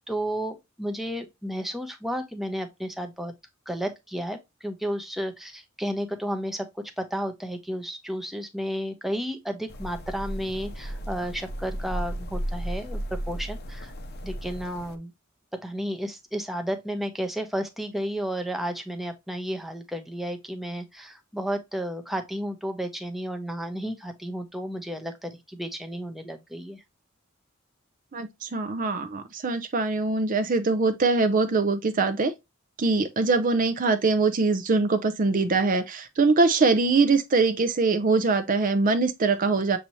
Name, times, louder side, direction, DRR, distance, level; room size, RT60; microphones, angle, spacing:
voice 1, 0.1-3.3 3.7-13.0 13.3-13.9 14.2-15.1 15.6-26.8, equal, ahead, 0.7 m, -32 dB
sound 1, 9.7-15.0, equal, 50° left, 0.6 m, -34 dB
voice 2, 28.1-32.3 32.8-39.8, right 3 dB, 40° right, 0.5 m, -23 dB
6.6 x 2.7 x 2.9 m
head